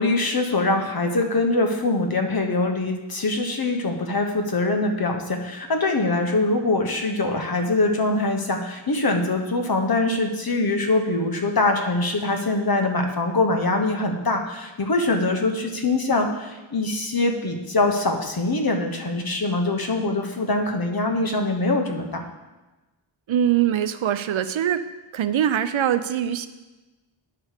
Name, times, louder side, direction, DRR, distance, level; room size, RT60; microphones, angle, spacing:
voice 1, 0.0-22.2, left 2 dB, 50° left, 4 dB, 1.2 m, -23 dB
voice 2, 23.3-24.8 25.1-26.5, right 10 dB, 70° right, 12 dB, 0.6 m, -22 dB
9.9 x 4.9 x 6.5 m, 1.1 s
wide cardioid pair, 80°, 48 cm